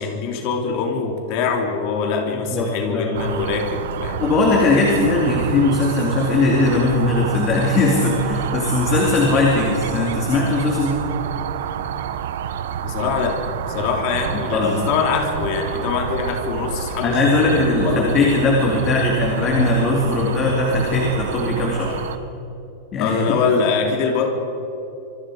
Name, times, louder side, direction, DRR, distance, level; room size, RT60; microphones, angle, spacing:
voice 1, 0.0-4.2 12.8-18.4 23.0-24.3, left 5 dB, 40° left, 2 dB, 3.3 m, -23 dB
voice 2, 2.3-3.2 4.2-11.1 14.3-14.8 17.0-22.0 22.9-23.4, left 2 dB, 20° left, -1 dB, 2.7 m, -19 dB
sound 1, 3.1-22.2, right 9 dB, 70° right, 1.1 m, -29 dB
26.0 x 23.0 x 5.0 m, 2.9 s
supercardioid pair, 180°, 0 cm